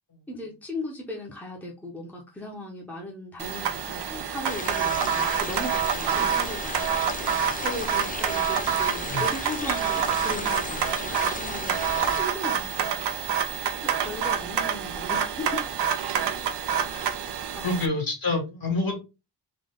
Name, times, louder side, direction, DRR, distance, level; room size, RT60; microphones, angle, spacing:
voice 1, 0.3-6.8 7.6-11.8 12.2-13.0 14.0-15.7 16.9-17.0 17.6-17.9, left 1 dB, 5° left, 0.9 m, -37 dB
sound 1, 3.4-17.9, right 8 dB, 70° right, 0.7 m, -27 dB
sound 2, 4.5-12.2, left 3 dB, 20° left, 0.4 m, -35 dB
voice 2, 17.6-18.9, left 2 dB, 55° left, 2.0 m, -27 dB
3.9 x 3.0 x 3.6 m
wide cardioid pair, 145°, 42 cm